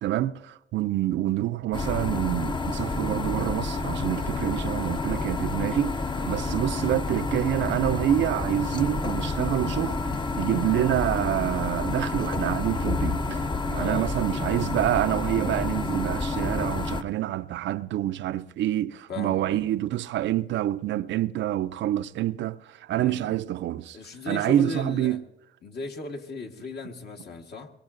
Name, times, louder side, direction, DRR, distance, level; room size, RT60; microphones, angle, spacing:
voice 1, 0.0-10.1 10.4-24.0 24.3-25.2, right 13 dB, 70° right, 0.4 m, -27 dB
sound 1, 1.7-17.0, left 3 dB, 25° left, 0.6 m, -29 dB
voice 2, 6.2-6.5 13.7-14.1 19.1-19.7 22.9-23.4 23.9-25.2 25.6-27.7, left 4 dB, 55° left, 1.4 m, -37 dB
22.5 x 21.0 x 2.5 m
cardioid pair, 90°, 20 cm